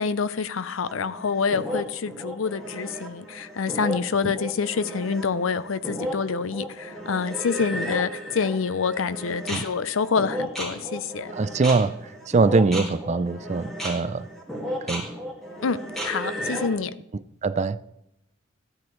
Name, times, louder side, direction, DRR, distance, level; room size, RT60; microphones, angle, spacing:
voice 1, 0.0-11.3 15.6-16.9, left 5 dB, 90° left, 0.6 m, -27 dB
sound 1, 0.9-16.8, equal, ahead, 2.0 m, -34 dB
voice 2, 11.3-14.3 14.8-15.1 17.4-17.8, right 3 dB, 35° right, 0.4 m, -23 dB
13.5 x 8.7 x 3.1 m
head